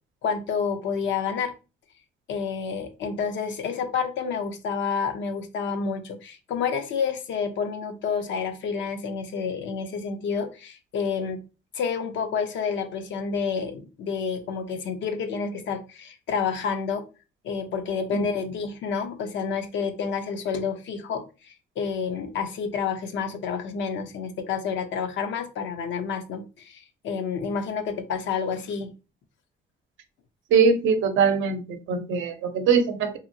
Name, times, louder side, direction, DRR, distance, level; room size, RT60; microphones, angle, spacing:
voice 1, 0.2-1.5 2.3-11.4 11.7-17.1 17.4-28.9, left 6 dB, 70° left, 7 dB, 0.6 m, -29 dB
voice 2, 30.5-33.2, right 5 dB, 80° right, 7 dB, 0.6 m, -22 dB
2.8 x 2.7 x 2.6 m, 0.32 s
cardioid pair, 90°, 20 cm